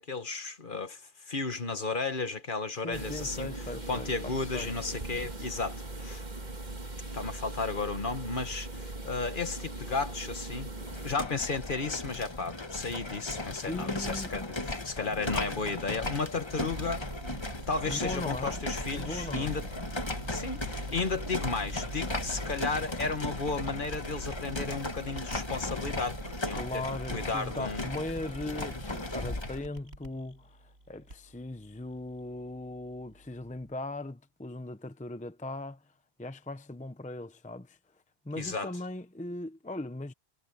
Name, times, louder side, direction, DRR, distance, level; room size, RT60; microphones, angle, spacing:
voice 1, 0.1-3.5 3.9-6.2 7.1-10.7 11.0-17.1 17.7-19.7 20.3-26.8 27.1-27.9 38.4-38.7, left 4 dB, 50° left, 1.6 m, -34 dB
voice 2, 2.8-4.1 4.4-4.7 13.7-14.4 15.0-15.1 17.9-18.6 18.9-19.6 26.6-35.9 36.2-37.8 38.2-40.1, left 2 dB, 10° left, 0.7 m, -38 dB
sound 1, 2.9-11.1, right 2 dB, 40° right, 2.2 m, -40 dB
sound 2, 10.8-29.6, left 2 dB, 25° left, 1.4 m, -37 dB
sound 3, 16.7-33.7, right 1 dB, 75° right, 6.6 m, -44 dB
omnidirectional pair, 1.1 m